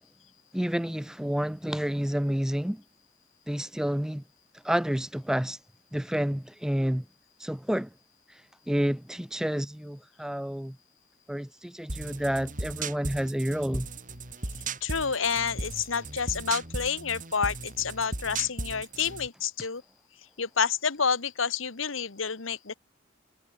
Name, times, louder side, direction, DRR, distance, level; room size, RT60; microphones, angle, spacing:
voice 1, 0.5-2.8 3.5-4.2 4.6-5.6 5.9-7.0 7.4-7.9 8.7-10.8 11.3-13.9, equal, 5° right, 0.4 m, -29 dB
sound 1, 11.9-19.3, right 3 dB, 40° right, 6.1 m, -36 dB
voice 2, 14.8-19.8 20.4-22.7, left 6 dB, 85° left, 1.4 m, -29 dB
head